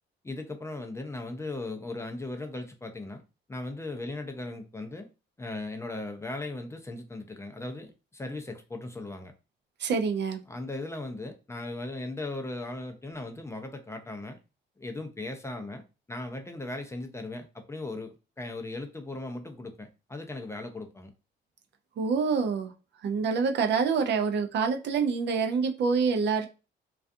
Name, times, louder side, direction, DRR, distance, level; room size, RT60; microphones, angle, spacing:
voice 1, 0.2-3.2 3.5-5.1 5.4-9.3 10.5-14.4 14.8-15.8 16.1-21.1, left 2 dB, 15° left, 0.4 m, -38 dB
voice 2, 9.8-10.4 22.0-22.7 23.0-26.5, right 5 dB, 60° right, 0.5 m, -26 dB
2.4 x 2.3 x 2.5 m
cardioid pair, 90°, 20 cm